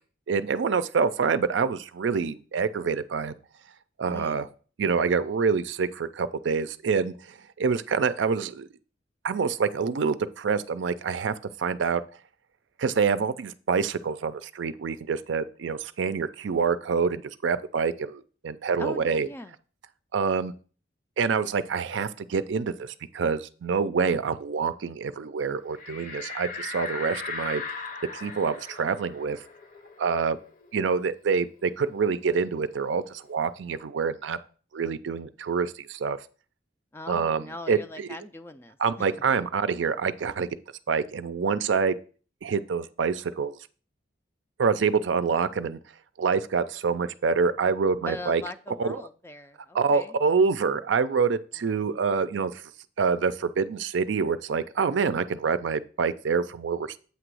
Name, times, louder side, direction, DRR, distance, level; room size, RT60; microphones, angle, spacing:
voice 1, 0.3-3.3 4.0-4.5 4.8-7.1 7.6-8.7 9.2-12.0 12.8-19.3 20.1-20.5 21.2-27.6 28.1-29.4 30.0-30.4 30.7-34.4 34.7-36.2 37.1-38.1 38.8-40.5 40.9-42.0 42.4-43.5 44.6-45.8 46.2-48.4 48.8-49.0 49.7-52.6 53.0-57.0, right 5 dB, 80° right, 13 dB, 0.4 m, -26 dB
voice 2, 4.1-4.5 18.8-19.5 36.9-39.1 48.1-50.2 51.6-51.9, left 2 dB, 15° left, 10 dB, 0.3 m, -40 dB
sound 1, 25.8-31.0 31.3-31.4 31.7-33.4, left 4 dB, 45° left, 0.7 m, -38 dB
8.2 x 3.0 x 6.1 m, 0.41 s
head